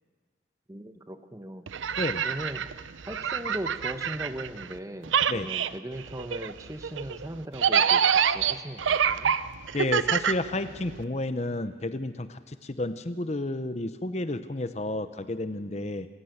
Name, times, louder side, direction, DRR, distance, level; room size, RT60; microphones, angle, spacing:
voice 1, 0.7-1.7 2.2-2.7 3.1-9.4, right 1 dB, 15° right, 8 dB, 1.0 m, -39 dB
sound 1, 1.7-4.8 5.0-11.0, right 7 dB, 90° right, 0.7 m, -26 dB
voice 2, 9.7-16.1, left 2 dB, 35° left, 11 dB, 0.8 m, -31 dB
27.0 x 15.5 x 8.0 m, 1.5 s
head